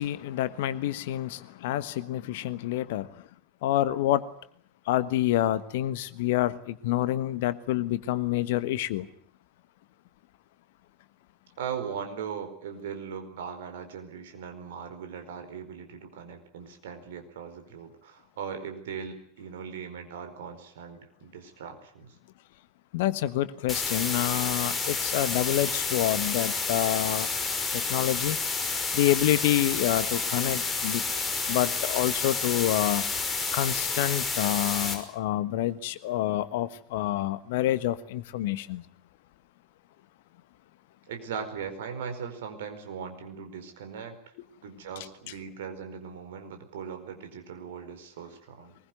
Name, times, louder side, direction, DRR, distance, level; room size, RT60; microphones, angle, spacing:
voice 1, 0.0-3.2 3.6-4.2 4.9-9.1 22.9-27.3 27.7-28.4 28.9-31.0 31.5-33.0 33.5-38.8, left 13 dB, 60° left, 1.4 m, -27 dB
voice 2, 11.6-22.1 41.1-44.3 44.6-48.8, right 7 dB, 60° right, 4.7 m, -39 dB
sound 1, 23.7-34.9, left 4 dB, 15° left, 5.5 m, -30 dB
23.0 x 21.0 x 9.4 m
figure-of-eight pair, 80°, 0 cm